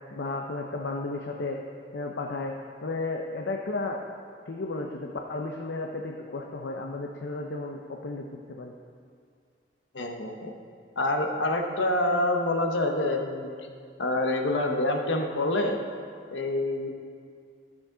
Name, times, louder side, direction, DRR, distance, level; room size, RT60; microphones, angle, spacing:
voice 1, 0.1-1.6 1.9-2.5 2.8-4.0 4.5-8.7, left 2 dB, 70° left, 2 dB, 0.6 m, -33 dB
voice 2, 9.9-10.5 11.0-13.7 14.0-15.8 16.3-16.9, left 1 dB, 90° left, 4 dB, 1.0 m, -27 dB
13.0 x 7.1 x 3.8 m, 2.2 s
head